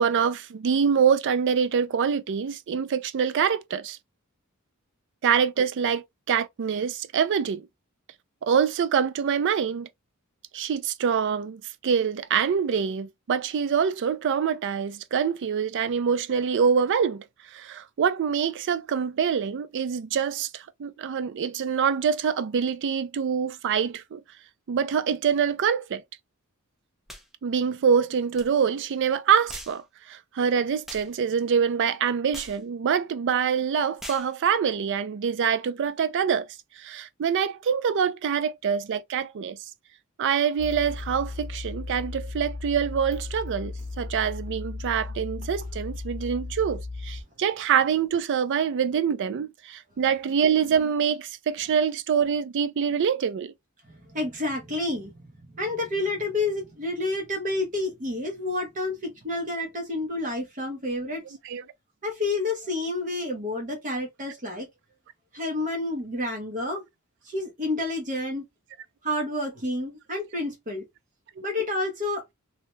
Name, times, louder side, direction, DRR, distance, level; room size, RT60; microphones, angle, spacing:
voice 1, 0.0-4.0 5.2-7.7 8.4-9.9 10.5-17.2 17.5-24.2 24.7-26.0 27.4-36.5 36.8-39.6 40.2-53.5 61.4-61.6, right 7 dB, 55° right, 0.4 m, -25 dB
sound 1, 27.1-27.3 28.4-28.5 29.5-29.8 30.9-31.1 32.3-32.6 34.0-34.3, equal, ahead, 0.5 m, -40 dB
sound 2, 40.6-47.2, left 3 dB, 30° left, 0.8 m, -36 dB
voice 2, 53.9-61.2 62.0-64.7 65.3-66.8 67.2-68.4 69.0-70.8 71.4-72.2, left 2 dB, 35° right, 0.8 m, -29 dB
2.8 x 2.1 x 2.9 m
head